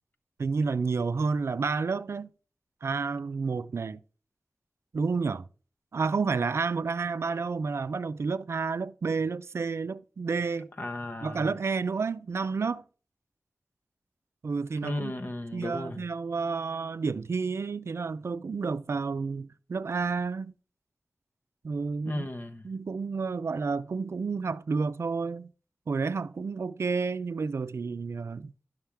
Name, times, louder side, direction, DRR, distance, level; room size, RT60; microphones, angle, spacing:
voice 1, 0.4-2.3 2.8-4.0 4.9-5.4 5.9-10.7 11.2-12.8 14.4-15.1 15.5-20.5 21.6-22.3 22.6-25.5 25.9-28.5, right 4 dB, 80° right, 0.5 m, -30 dB
voice 2, 10.8-11.5 14.8-16.0 22.0-22.7, left 1 dB, 45° left, 1.0 m, -35 dB
11.5 x 6.5 x 3.4 m
wide cardioid pair, 80°, 4 cm